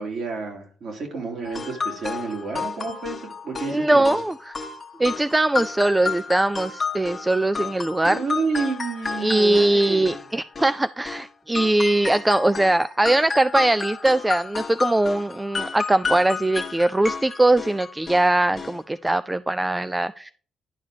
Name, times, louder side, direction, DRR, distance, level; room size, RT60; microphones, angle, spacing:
voice 1, 0.0-4.2 8.0-10.2 18.5-18.6, right 4 dB, 60° right, 1 dB, 3.1 m, -30 dB
sound 1, 1.4-11.3 11.5-18.3 18.6-18.8 19.1-19.2, left 5 dB, 35° left, 1.2 m, -32 dB
voice 2, 3.7-4.5 5.0-8.2 9.2-20.3, right 2 dB, 15° right, 15 dB, 0.3 m, -21 dB
10.5 x 4.8 x 5.0 m, 0.43 s
cardioid pair, 90°, 0 cm